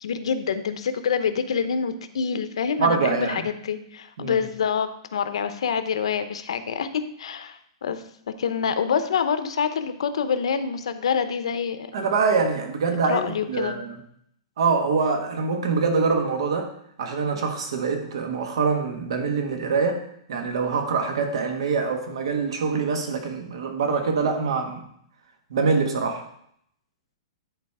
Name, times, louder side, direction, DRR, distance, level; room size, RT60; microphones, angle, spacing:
voice 1, 0.0-12.1 13.1-13.7, left 6 dB, 90° left, 10 dB, 0.8 m, -26 dB
voice 2, 2.8-3.4 4.2-4.4 11.9-14.0 14.6-16.7 17.0-20.0 20.3-24.8 25.5-26.2, right 4 dB, 70° right, 5 dB, 1.5 m, -24 dB
10.5 x 4.1 x 4.8 m, 0.69 s
hypercardioid pair, 175°, 3 cm